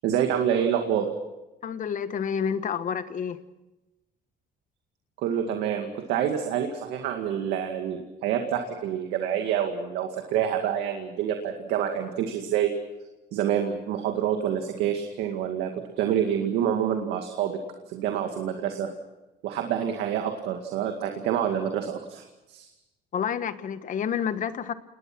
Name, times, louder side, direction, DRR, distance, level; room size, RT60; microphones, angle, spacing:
voice 1, 0.0-1.1 5.2-12.8 13.3-17.6 17.9-18.9 19.4-22.7, right 9 dB, 90° right, 4 dB, 2.1 m, -27 dB
voice 2, 1.6-3.4 23.1-24.7, left 7 dB, 50° left, 12 dB, 1.4 m, -29 dB
29.0 x 20.5 x 6.1 m, 1.0 s
cardioid pair, 110°, 17 cm